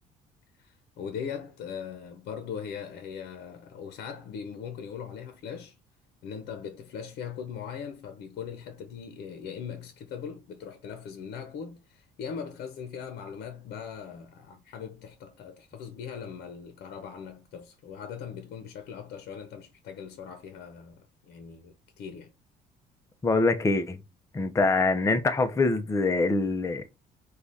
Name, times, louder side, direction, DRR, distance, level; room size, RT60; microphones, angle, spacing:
voice 1, 0.6-5.8 6.2-22.3, left 7 dB, 70° left, 0.8 m, -40 dB
voice 2, 23.2-24.0 24.3-26.8, left 3 dB, 15° left, 0.5 m, -24 dB
4.8 x 2.3 x 4.0 m
cardioid pair, 110°, 17 cm